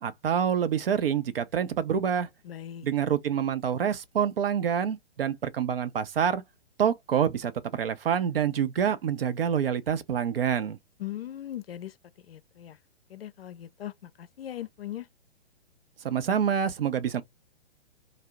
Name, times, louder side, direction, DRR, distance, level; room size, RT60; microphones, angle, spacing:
voice 1, 0.0-2.3 2.8-6.4 6.8-10.8 16.0-17.2, right 8 dB, 60° right, 0.6 m, -27 dB
voice 2, 2.4-2.9 11.0-12.0 12.3-12.8 13.1-15.1, left 12 dB, 65° left, 0.5 m, -39 dB
2.7 x 2.0 x 3.4 m
figure-of-eight pair, 120°, 32 cm